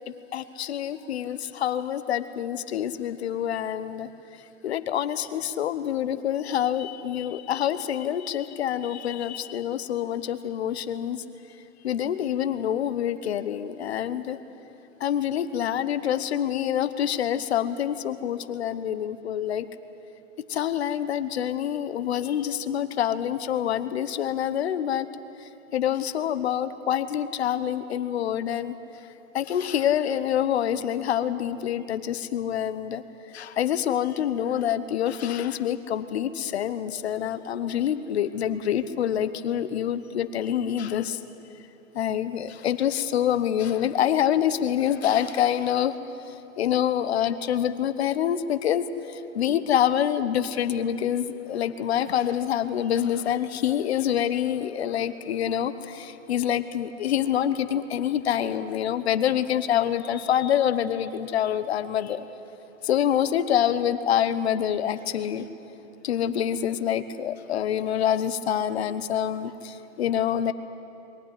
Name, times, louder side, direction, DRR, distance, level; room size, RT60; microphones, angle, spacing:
voice 1, 0.3-4.1 4.6-11.2 11.8-14.4 15.0-19.7 20.5-25.1 25.7-28.7 29.3-33.0 33.3-41.2 41.9-46.0 46.3-62.2 62.8-65.5 66.0-70.5, left 10 dB, 50° left, 12 dB, 1.1 m, -26 dB
22.5 x 15.0 x 9.8 m, 2.9 s
hypercardioid pair, 160°, 40 cm